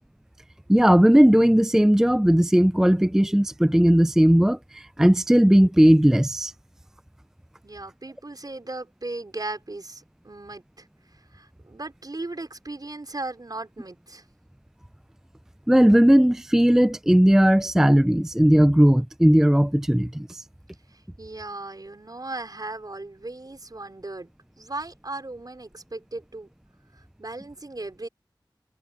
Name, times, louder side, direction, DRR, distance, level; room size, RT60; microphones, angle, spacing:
voice 1, 0.7-6.5 15.7-20.4, equal, 5° right, 0.4 m, -17 dB
voice 2, 7.6-14.2 20.9-24.3 24.6-26.5 26.9-28.1, right 2 dB, 50° right, 5.1 m, -37 dB
wide cardioid pair, 55°, 8 cm